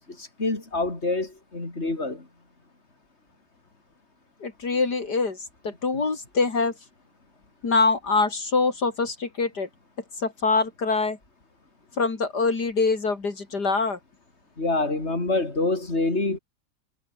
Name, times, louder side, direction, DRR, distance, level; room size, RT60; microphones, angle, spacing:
voice 1, 0.1-2.3 14.6-16.4, left 2 dB, 40° left, 5.1 m, -26 dB
voice 2, 4.4-6.7 7.6-9.7 10.2-11.2 12.0-14.0, left 4 dB, 75° left, 3.8 m, -24 dB
omnidirectional pair, 1.8 m